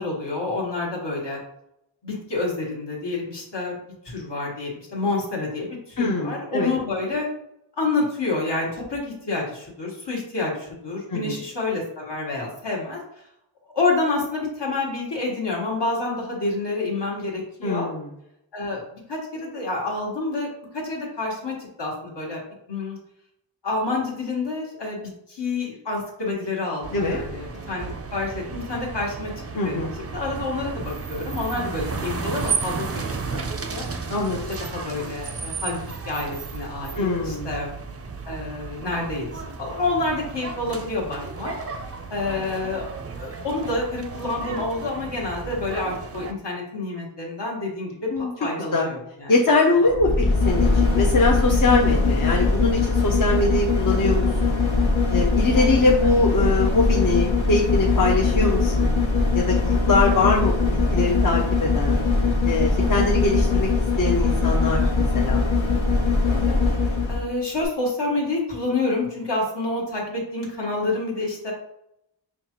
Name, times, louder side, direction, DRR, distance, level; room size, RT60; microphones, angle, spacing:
voice 1, 0.0-1.4 2.0-3.8 4.0-7.3 7.8-13.0 13.7-17.9 18.5-22.4 22.7-23.0 23.6-29.3 29.6-29.8 30.1-32.8 33.4-33.9 34.5-37.7 38.3-41.5 42.1-42.8 43.2-49.3 49.8-50.1 55.5-56.1 59.9-60.3 62.8-63.2 66.3-66.6 66.8-71.5, left 3 dB, 65° left, -2 dB, 1.3 m, -28 dB
voice 2, 6.0-6.7 11.1-11.4 17.6-18.1 26.9-27.2 29.6-29.9 34.1-34.4 37.0-37.5 48.1-48.3 48.7-48.9 49.3-50.1 50.4-54.6 55.1-59.0 59.3-62.0 62.4-63.7 64.0-65.4, left 2 dB, 45° left, -2 dB, 0.6 m, -22 dB
sound 1, 26.8-46.3, right 5 dB, 35° right, 0.4 m, -33 dB
sound 2, 49.9-67.3 67.6-67.7, left 3 dB, 85° left, 0.9 m, -21 dB
5.2 x 2.4 x 2.9 m, 0.78 s
wide cardioid pair, 60°, 46 cm